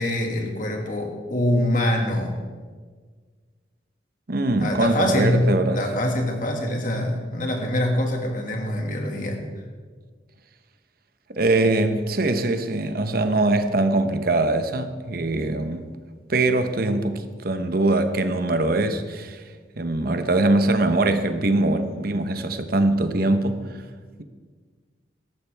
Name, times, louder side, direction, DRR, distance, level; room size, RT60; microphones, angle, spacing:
voice 1, 0.0-2.3 4.6-9.4, left 1 dB, 50° left, 2.0 m, -24 dB
voice 2, 4.3-5.8 11.3-15.9 16.3-19.4 19.8-23.6, right 2 dB, 55° right, 1.0 m, -22 dB
17.5 x 14.0 x 3.5 m
head